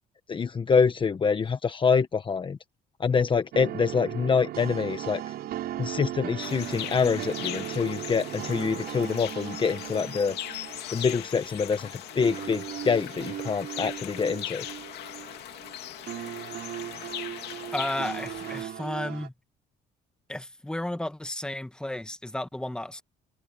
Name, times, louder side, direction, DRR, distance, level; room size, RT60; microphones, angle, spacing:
voice 1, 0.3-2.6 3.0-5.2 5.8-10.4 10.9-11.9 12.1-14.7, left 5 dB, 30° left, 1.2 m, -25 dB
sound 1, 3.5-19.3, right 13 dB, 70° right, 7.7 m, -38 dB
sound 2, 6.4-18.6, left 13 dB, 75° left, 2.4 m, -39 dB
voice 2, 17.7-19.3 20.3-23.0, left 1 dB, 5° left, 1.8 m, -33 dB
cardioid pair, 110°, 17 cm